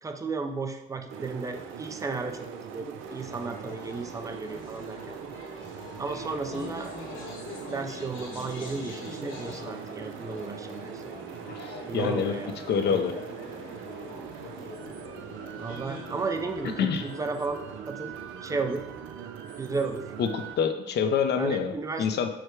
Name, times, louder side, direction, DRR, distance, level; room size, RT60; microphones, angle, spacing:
voice 1, 0.0-5.2 6.0-6.9 7.4-11.0 11.9-12.5 12.9-13.0 15.6-17.6 17.9-18.1 18.4-18.9 19.6-20.1 21.4-22.1, right 4 dB, 15° right, 6 dB, 0.4 m, -34 dB
sound 1, 1.1-20.6, right 8 dB, 85° right, 0.4 m, -41 dB
sound 2, 3.1-18.5, left 3 dB, 75° left, 1.2 m, -44 dB
voice 2, 11.9-12.3 12.7-13.1 16.8-17.1 20.2-21.7 22.0-22.3, left 7 dB, 60° left, 8 dB, 0.5 m, -26 dB
4.8 x 2.1 x 4.6 m, 0.95 s
cardioid pair, 90°, 20 cm